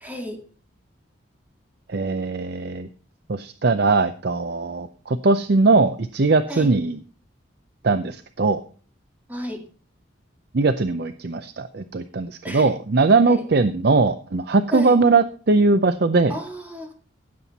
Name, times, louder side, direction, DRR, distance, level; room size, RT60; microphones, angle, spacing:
voice 1, 0.0-0.4 6.5-6.7 9.3-9.6 12.4-12.7 13.3-13.4 14.7-15.0 16.3-16.9, equal, 10° right, 3 dB, 2.2 m, -32 dB
voice 2, 1.9-2.9 3.3-7.0 7.8-8.6 10.5-16.3, right 3 dB, 55° right, 11 dB, 0.6 m, -20 dB
16.0 x 7.6 x 4.1 m, 0.41 s
head